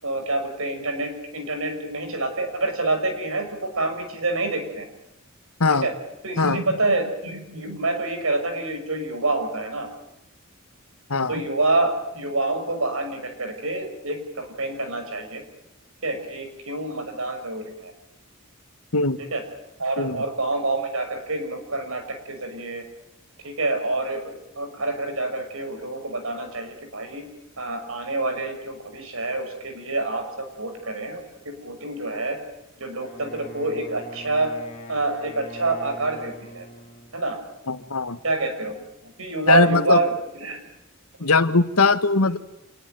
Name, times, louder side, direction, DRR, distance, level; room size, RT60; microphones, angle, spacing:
voice 1, 0.0-4.9 5.8-5.9 6.2-9.9 11.3-15.4 16.0-17.9 19.3-19.4 19.8-22.8 23.4-27.2 27.6-32.4 32.8-34.5 34.9-36.7 37.1-37.4 38.2-38.8 39.0-40.1 40.4-40.6 41.2-41.3, right 2 dB, 75° right, 7 dB, 6.3 m, -27 dB
voice 2, 11.1-11.4 18.9-19.2 20.0-20.2 37.7-38.2 39.5-40.0 41.2-42.4, left 3 dB, 85° left, 12 dB, 1.6 m, -20 dB
Wind instrument woodwind instrument, 33.0-37.2, left 1 dB, 30° left, 6.2 m, -43 dB
27.5 x 20.5 x 9.3 m, 0.87 s
head